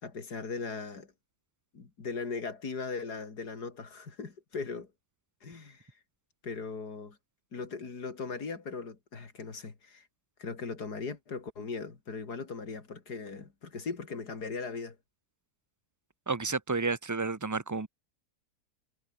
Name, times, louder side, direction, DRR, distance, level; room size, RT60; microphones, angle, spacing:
voice 1, 0.0-1.1 1.7-4.9 5.4-5.9 6.4-7.2 7.5-10.1 10.4-15.0, left 4 dB, 65° left, 3.6 m, -39 dB
voice 2, 16.3-17.9, right 4 dB, 20° right, 0.5 m, -31 dB
omnidirectional pair, 1.9 m